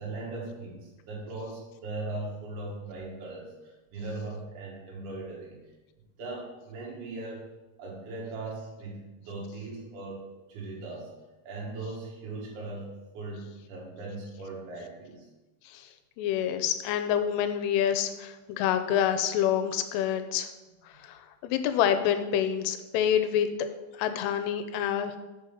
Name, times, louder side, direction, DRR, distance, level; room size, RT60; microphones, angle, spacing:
voice 1, 0.0-5.6 6.2-7.4 7.8-11.1 11.4-15.3 18.4-18.5, right 2 dB, 80° right, -3 dB, 1.8 m, -39 dB
voice 2, 16.2-20.5 21.0-23.5 24.0-25.1, left 9 dB, 85° left, 8 dB, 3.0 m, -27 dB
6.5 x 5.1 x 5.6 m, 1.1 s
omnidirectional pair, 5.9 m